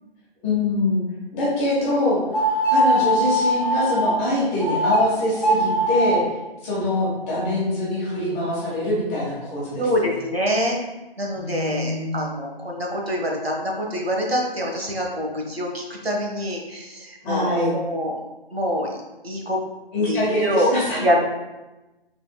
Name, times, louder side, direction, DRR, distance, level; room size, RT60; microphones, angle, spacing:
voice 1, 0.4-1.0 1.3-2.2 2.7-6.2 6.6-9.8 11.4-12.2 17.2-17.7 19.9-21.1, left 1 dB, 15° left, -7 dB, 1.2 m, -24 dB
sound 1, 2.3-4.1 4.6-5.0 5.3-6.2, equal, ahead, 1.0 m, -20 dB
voice 2, 9.8-10.8 11.2-18.2 18.5-19.6 20.1-21.2, equal, 85° right, 0 dB, 1.1 m, -25 dB
5.7 x 3.5 x 2.3 m, 1.1 s
figure-of-eight pair, 145°, 30 cm